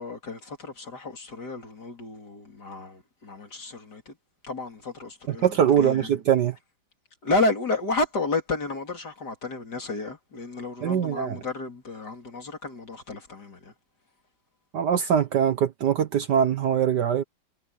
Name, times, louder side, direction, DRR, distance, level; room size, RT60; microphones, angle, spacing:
voice 1, 0.0-4.1 4.4-6.1 7.2-13.7, left 2 dB, 50° left, 4.1 m, -31 dB
voice 2, 5.3-6.5 10.8-11.4 14.7-17.2, right 8 dB, 60° right, 1.4 m, -22 dB
omnidirectional pair, 2.3 m